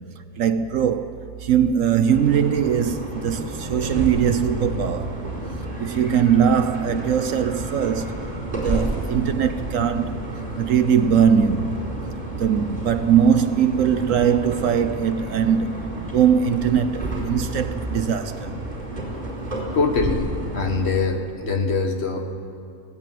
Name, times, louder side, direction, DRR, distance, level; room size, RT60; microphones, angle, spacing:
voice 1, 0.4-5.1 5.8-8.2 8.5-10.2 10.6-11.8 12.4-18.5, right 8 dB, 65° right, 1.0 m, -21 dB
sound 1, 2.1-20.9, right 1 dB, 30° right, 5.0 m, -30 dB
voice 2, 19.7-22.3, left 4 dB, 45° left, 1.5 m, -23 dB
19.0 x 16.0 x 9.1 m
omnidirectional pair, 1.6 m